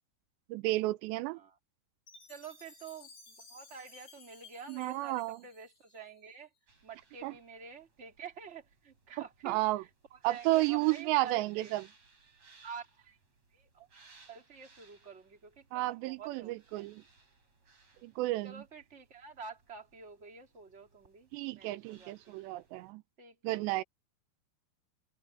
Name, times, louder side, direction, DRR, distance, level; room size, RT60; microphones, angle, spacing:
voice 1, 0.5-1.4 4.7-5.4 7.2-7.3 9.4-9.8 10.2-11.9 15.7-17.0 18.0-18.6 21.3-23.0 23.4-23.8, right 19 dB, 90° right, 2.9 m, -32 dB
Chime, 2.1-6.3, left 4 dB, 55° left, 6.3 m, -57 dB
voice 2, 2.3-6.5 6.8-11.7 12.6-13.2 13.5-13.9 14.2-16.9 17.9-18.1 18.4-22.4 23.2-23.8, right 6 dB, 20° right, 2.6 m, -49 dB
sound 1, 6.7-22.9, right 4 dB, 35° right, 7.4 m, -63 dB
omnidirectional pair, 4.9 m